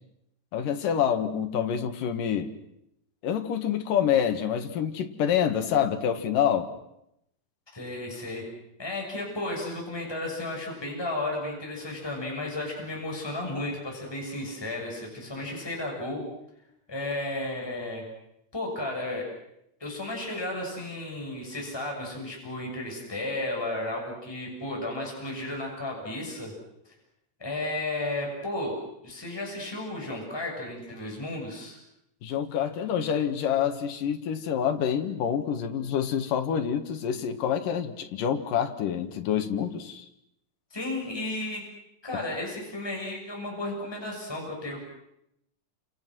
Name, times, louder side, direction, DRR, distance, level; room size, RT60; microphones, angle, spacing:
voice 1, 0.5-2.5 3.2-6.7 32.2-40.1, left 8 dB, 80° left, 6 dB, 3.3 m, -27 dB
voice 2, 7.7-8.5 8.8-16.2 16.9-18.0 18.5-19.3 19.8-26.5 27.4-28.8 29.0-31.8 40.7-41.7 42.0-44.9, left 2 dB, 5° left, -1 dB, 6.6 m, -33 dB
29.5 x 28.0 x 6.3 m, 0.80 s
omnidirectional pair, 3.8 m